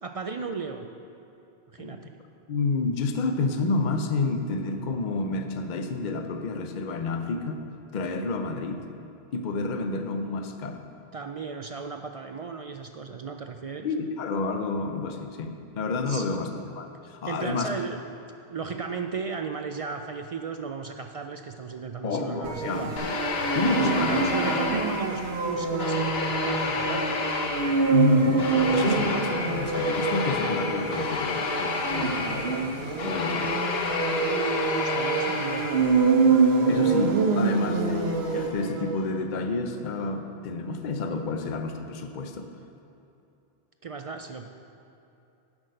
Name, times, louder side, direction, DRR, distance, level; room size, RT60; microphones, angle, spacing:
voice 1, 0.0-0.9 1.7-2.1 11.1-13.9 16.1-16.4 17.2-22.9 23.7-27.2 33.3-33.4 34.2-35.7 43.8-44.5, right 5 dB, 55° right, 5 dB, 0.3 m, -35 dB
voice 2, 2.5-7.6 7.9-8.8 9.3-10.8 13.8-17.7 22.0-23.1 23.5-24.6 27.9-33.6 36.6-42.5, left 3 dB, 50° left, 6 dB, 0.8 m, -29 dB
sound 1, 22.4-39.0, right 4 dB, 75° right, 1.2 m, -26 dB
sound 2, 23.0-25.4 25.8-36.1, left 4 dB, 70° left, 1.1 m, -30 dB
11.0 x 6.1 x 6.4 m, 2.8 s
omnidirectional pair, 1.1 m